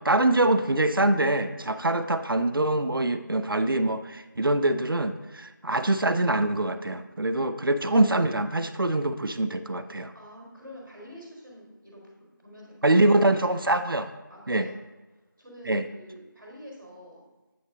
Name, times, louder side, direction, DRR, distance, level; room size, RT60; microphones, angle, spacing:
voice 1, 0.0-10.1 12.8-14.1 14.5-14.7 15.7-15.9, right 2 dB, 90° right, 10 dB, 0.5 m, -24 dB
voice 2, 10.1-13.3 14.3-14.7 15.4-17.2, equal, ahead, -19 dB, 0.6 m, -47 dB
8.6 x 3.9 x 5.0 m, 1.2 s
figure-of-eight pair, 170°, 11 cm